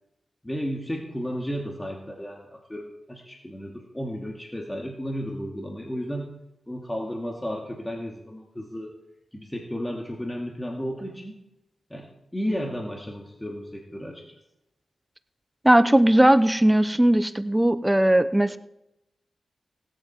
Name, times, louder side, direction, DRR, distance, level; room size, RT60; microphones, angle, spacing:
voice 1, 0.4-6.3 6.7-8.9 9.3-11.3 11.9-14.2, equal, 15° left, 0 dB, 2.6 m, -33 dB
voice 2, 15.6-18.6, right 1 dB, 10° right, 12 dB, 0.9 m, -18 dB
18.0 x 11.0 x 4.6 m, 0.87 s
cardioid pair, 50°, 0 cm